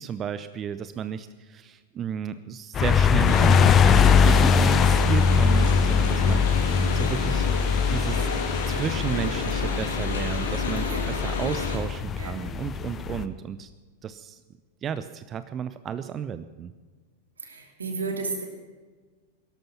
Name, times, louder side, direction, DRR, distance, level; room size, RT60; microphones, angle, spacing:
voice 1, 0.0-6.4 6.9-7.5 7.9-8.3 8.7-13.7 14.0-14.4 14.8-16.7, right 8 dB, 30° right, 12 dB, 0.6 m, -33 dB
sound 1, 2.7-13.2, left 6 dB, 25° left, 0.8 m, -22 dB
sound 2, 3.3-11.8, left 3 dB, 70° left, 3.0 m, -31 dB
voice 2, 17.4-18.5, right 3 dB, 80° right, 4 dB, 2.9 m, -33 dB
17.5 x 13.0 x 5.9 m, 1.4 s
figure-of-eight pair, 95°, 0 cm